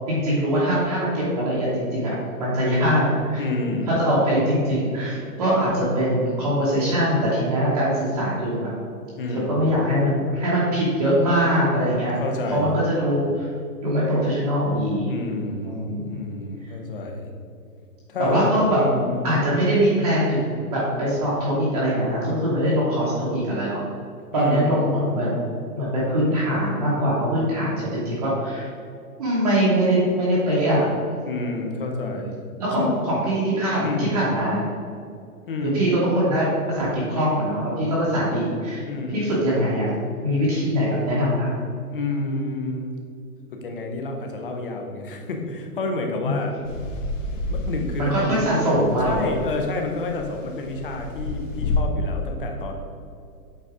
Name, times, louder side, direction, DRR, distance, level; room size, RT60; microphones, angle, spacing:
voice 1, 0.1-3.4 3.9-8.7 9.3-12.2 12.5-13.5 13.8-15.1 15.6-16.2 18.2-18.8 19.2-23.8 24.3-25.4 25.8-28.7 29.2-30.8 31.8-32.2 32.6-34.6 35.7-38.8 39.1-39.9 40.2-41.5 46.2-46.3 48.0-49.2, equal, 25° right, -8 dB, 1.1 m, -22 dB
voice 2, 3.4-4.0 9.2-9.7 12.2-12.7 15.1-17.3 18.1-19.4 24.3-24.9 31.2-32.4 32.8-33.1 33.8-34.2 35.5-35.9 38.8-39.3 41.9-42.9 43.6-46.6 47.5-48.6 49.0-52.7, left 2 dB, 35° left, 3 dB, 0.8 m, -29 dB
sound 1, 46.6-48.4 48.7-51.8, left 2 dB, 55° left, 1.5 m, -29 dB
8.2 x 3.9 x 4.8 m, 2.4 s
hypercardioid pair, 180°, 45 cm